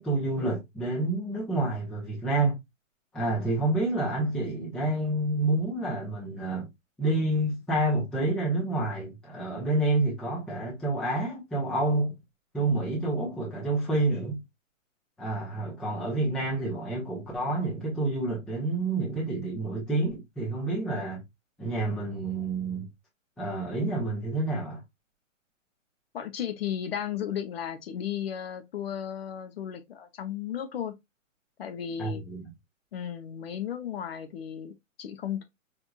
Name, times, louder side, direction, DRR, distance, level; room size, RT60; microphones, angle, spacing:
voice 1, 0.0-2.6 3.1-6.7 7.0-12.1 12.5-14.4 15.2-21.2 21.6-22.9 23.4-24.8 32.0-32.5, right 2 dB, ahead, 0.5 m, -28 dB
voice 2, 26.1-30.9 31.6-32.2 32.9-35.4, left 9 dB, 50° left, 0.7 m, -34 dB
4.5 x 2.5 x 2.3 m
hypercardioid pair, 140°, 40 cm